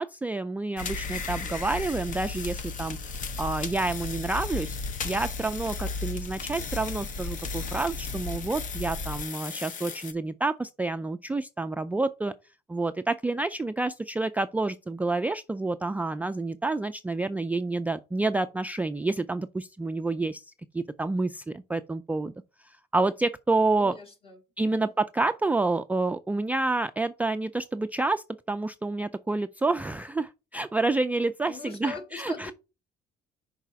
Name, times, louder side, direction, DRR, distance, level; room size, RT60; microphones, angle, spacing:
voice 1, 0.0-3.0 3.4-4.8 5.0-12.3 12.7-20.4 20.7-22.3 22.6-23.9 24.6-32.5, right 3 dB, 10° right, 0.3 m, -28 dB
sound 1, 0.8-10.1, left 4 dB, 50° left, 0.9 m, -34 dB
voice 2, 23.8-24.9 31.5-32.5, left 4 dB, 35° left, 2.4 m, -42 dB
5.6 x 4.1 x 6.0 m
cardioid pair, 110°, 17 cm